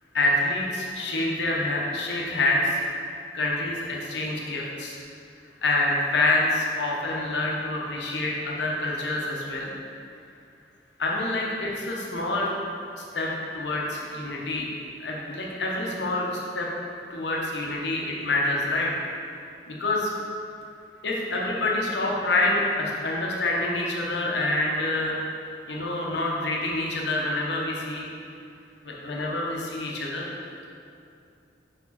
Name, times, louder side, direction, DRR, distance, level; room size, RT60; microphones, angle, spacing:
voice 1, 0.1-2.6 3.3-5.0 5.6-9.7 11.0-12.5 13.1-13.3 13.5-14.7 15.0-16.7 17.1-18.9 19.7-20.1 21.0-25.2 25.7-28.1 28.8-30.2, left 2 dB, 75° left, -3 dB, 1.0 m, -27 dB
5.4 x 4.7 x 4.2 m, 2.6 s
head